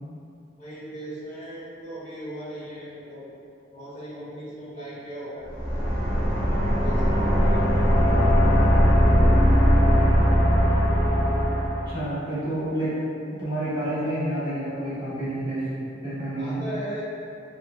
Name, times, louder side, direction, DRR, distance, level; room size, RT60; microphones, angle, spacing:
voice 1, 0.6-3.2 3.7-5.5 6.4-8.2 16.3-17.0, equal, 40° left, -13 dB, 1.2 m, -38 dB
sound 1, 5.5-12.0, equal, 10° left, 1.0 m, -20 dB
voice 2, 11.9-13.0 13.4-15.6 16.0-16.6, right 1 dB, 25° right, -11 dB, 0.9 m, -29 dB
3.1 x 2.3 x 2.6 m, 2.6 s
head